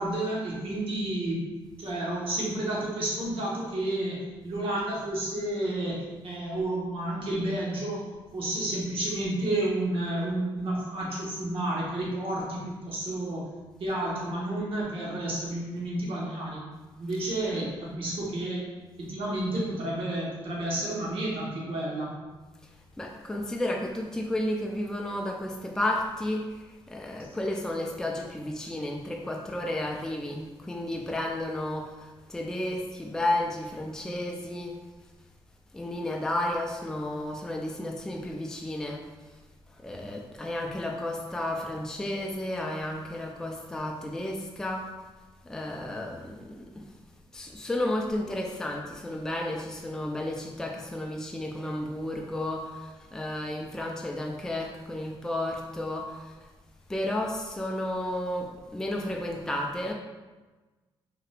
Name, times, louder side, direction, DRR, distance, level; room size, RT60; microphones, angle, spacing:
voice 1, 0.0-1.5 1.8-13.5 13.8-16.7 17.0-18.6 19.0-22.2, right 1 dB, 65° right, -5 dB, 1.1 m, -31 dB
voice 2, 22.6-34.8 35.7-39.0 39.3-39.4 39.7-44.9 45.4-46.8 47.3-56.4 56.9-59.9, left 1 dB, 5° left, 0 dB, 0.3 m, -32 dB
2.9 x 2.4 x 3.2 m, 1.2 s
cardioid pair, 105°, 10 cm